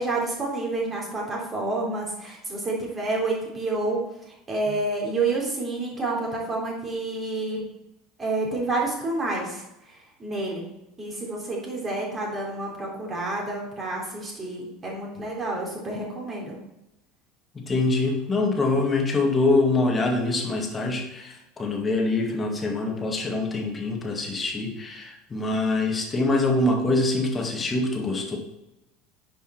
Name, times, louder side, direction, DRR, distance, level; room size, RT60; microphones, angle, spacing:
voice 1, 0.0-4.0 4.3-7.6 8.2-10.7 11.0-16.6, right 2 dB, 25° right, -3 dB, 3.9 m, -29 dB
voice 2, 17.5-28.4, left 2 dB, 20° left, 1 dB, 2.1 m, -24 dB
10.0 x 5.9 x 4.6 m, 0.89 s
figure-of-eight pair, 70°, 0 cm